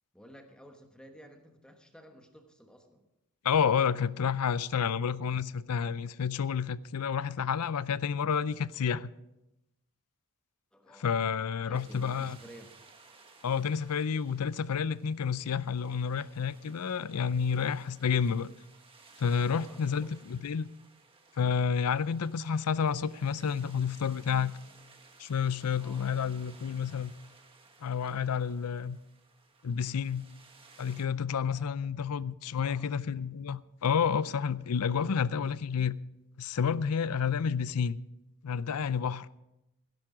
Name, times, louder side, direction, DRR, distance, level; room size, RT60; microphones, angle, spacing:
voice 1, 0.1-3.1 10.7-11.1 11.6-12.7 19.5-20.1 25.8-26.1 31.4-31.9 32.4-32.9, equal, 5° left, 1.2 m, -53 dB
voice 2, 3.4-9.1 11.0-12.4 13.4-18.5 19.2-20.7 21.4-24.5 25.2-27.1 27.8-29.0 29.6-30.3 30.8-36.0 36.4-38.0 38.4-39.3, left 6 dB, 90° left, 0.5 m, -30 dB
sound 1, 11.7-31.1, right 4 dB, 25° right, 1.4 m, -58 dB
16.5 x 11.0 x 4.9 m
head